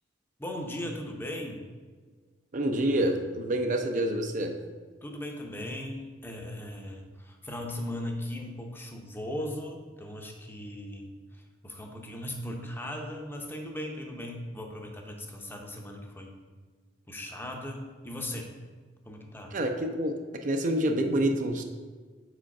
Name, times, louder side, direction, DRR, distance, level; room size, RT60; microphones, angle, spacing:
voice 1, 0.4-1.7 5.0-16.4 17.1-18.5 19.1-19.6, left 1 dB, 10° left, 2 dB, 0.7 m, -38 dB
voice 2, 2.5-4.6 19.5-21.6, right 1 dB, 45° right, 5 dB, 0.5 m, -27 dB
5.0 x 4.5 x 5.8 m, 1.5 s
head